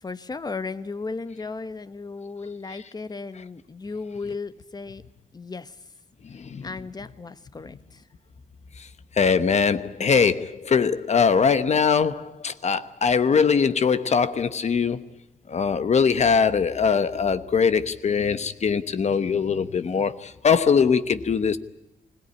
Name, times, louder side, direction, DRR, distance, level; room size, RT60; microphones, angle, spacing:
voice 1, 0.0-5.0 5.3-5.8 6.6-8.0, left 4 dB, 25° left, 1.2 m, -35 dB
voice 2, 6.2-6.7 8.8-8.9 9.1-15.1 15.5-21.6, left 6 dB, 45° left, 1.0 m, -22 dB
25.0 x 17.5 x 9.9 m
wide cardioid pair, 160°, 16 cm